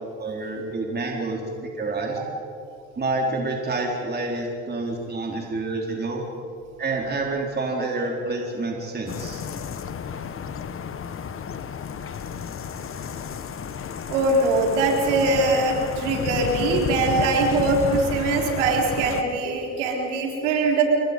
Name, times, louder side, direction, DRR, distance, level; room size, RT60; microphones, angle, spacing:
voice 1, 0.2-2.2 3.0-6.2 6.8-9.4, right 2 dB, 30° right, 0 dB, 4.2 m, -28 dB
sound 1, 9.1-19.2, left 7 dB, 40° left, 1.5 m, -32 dB
voice 2, 14.1-20.8, right 3 dB, 80° right, 1 dB, 4.3 m, -22 dB
28.5 x 22.5 x 5.4 m, 2.5 s
hypercardioid pair, 65°, 35 cm